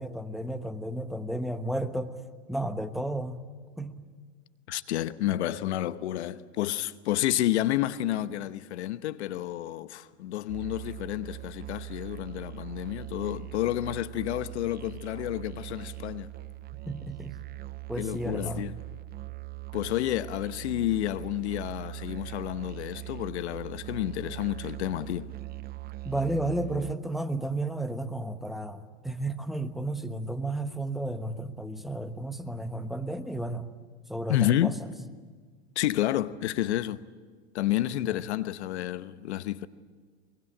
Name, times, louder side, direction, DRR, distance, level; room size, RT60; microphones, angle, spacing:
voice 1, 0.0-2.1 2.5-3.4 3.8-3.9 16.7-17.4 17.9-18.7 26.0-33.7 34.1-34.9 38.1-38.2, right 1 dB, ahead, 1.2 m, -33 dB
voice 2, 4.7-16.3 18.0-18.7 19.7-25.3 34.3-34.7 35.8-37.0 37.5-39.7, left 13 dB, 80° left, 1.0 m, -30 dB
Musical instrument, 10.5-26.9, right 20 dB, 30° right, 0.6 m, -41 dB
23.0 x 22.5 x 8.7 m
hypercardioid pair, 115°, 33 cm